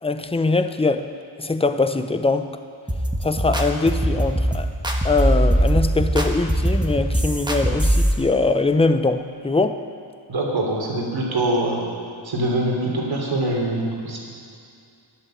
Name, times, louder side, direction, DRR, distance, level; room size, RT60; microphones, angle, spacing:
voice 1, 0.0-1.1 1.4-2.5 3.2-4.7 5.0-9.8, left 3 dB, 10° left, 9 dB, 0.6 m, -22 dB
sound 1, 2.9-8.1, right 1 dB, 10° right, 1.4 m, -21 dB
voice 2, 10.3-11.8 12.2-14.2, right 1 dB, 70° right, -2 dB, 3.3 m, -23 dB
11.5 x 11.5 x 7.6 m, 2.4 s
wide cardioid pair, 100°, 49 cm